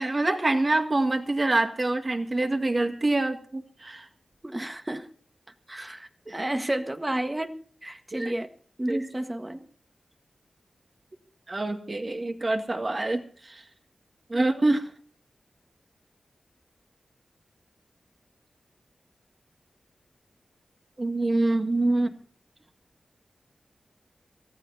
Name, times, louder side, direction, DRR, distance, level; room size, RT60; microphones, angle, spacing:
voice 1, 0.0-4.1 6.3-6.4 8.1-8.3 8.9-9.0 11.5-13.6 14.3-14.8 21.0-22.1, right 2 dB, 45° right, 5 dB, 2.1 m, -26 dB
voice 2, 4.4-5.1 5.7-7.6 7.8-8.5 8.8-9.7 14.3-14.6, right 1 dB, 20° right, 7 dB, 1.6 m, -31 dB
26.5 x 14.5 x 2.8 m, 0.43 s
cardioid pair, 45°, 0 cm